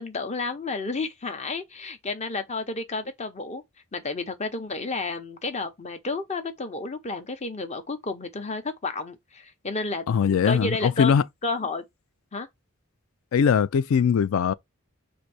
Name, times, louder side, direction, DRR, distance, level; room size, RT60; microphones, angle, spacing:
voice 1, 0.0-3.6 3.9-11.1 11.4-11.8 12.3-12.5, left 3 dB, 30° left, 0.7 m, -31 dB
voice 2, 10.1-11.2 13.3-14.5, left 7 dB, 65° left, 0.3 m, -21 dB
3.9 x 2.6 x 4.7 m
head